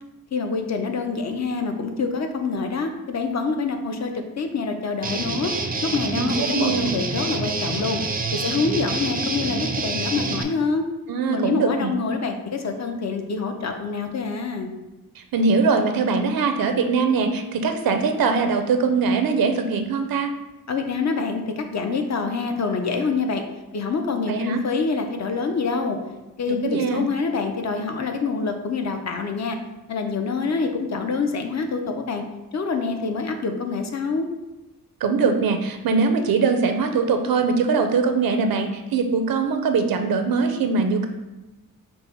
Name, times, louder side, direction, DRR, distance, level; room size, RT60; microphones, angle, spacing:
voice 1, 0.3-5.5 5.8-8.0 8.3-10.9 11.3-14.7 20.7-23.4 23.7-26.0 26.4-29.6 29.9-32.2 32.5-34.3, left 4 dB, 50° left, 5 dB, 0.6 m, -26 dB
Guitar, 5.0-10.4, right 3 dB, 25° right, 0.4 m, -27 dB
voice 2, 6.2-6.9 11.1-11.9 15.2-20.3 24.3-24.6 26.5-27.1 35.0-41.1, right 4 dB, 85° right, 7 dB, 0.5 m, -22 dB
5.4 x 2.1 x 4.4 m, 1.1 s
wide cardioid pair, 100°, 35 cm